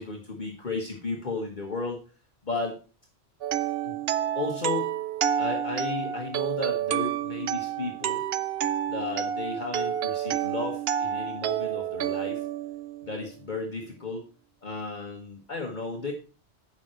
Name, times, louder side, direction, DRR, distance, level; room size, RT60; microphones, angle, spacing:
voice 1, 0.0-2.0 2.4-2.8 3.8-4.0 4.3-4.9 5.4-8.2 8.9-12.4 13.0-14.3 14.6-16.1, left 3 dB, 45° left, 1 dB, 1.5 m, -34 dB
sound 1, 3.4-13.3, right 10 dB, 70° right, 0.8 m, -29 dB
9.8 x 7.4 x 4.4 m, 0.35 s
omnidirectional pair, 1.1 m